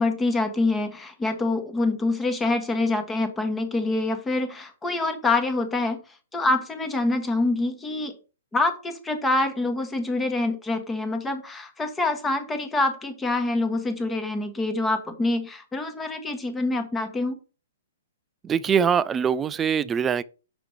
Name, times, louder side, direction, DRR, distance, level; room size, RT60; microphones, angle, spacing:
voice 1, 0.0-6.0 6.3-8.1 8.5-17.4, left 2 dB, 10° left, 1.1 m, -26 dB
voice 2, 18.4-20.2, right 7 dB, 15° right, 0.3 m, -23 dB
6.1 x 4.9 x 3.3 m
hypercardioid pair, 135°, 0 cm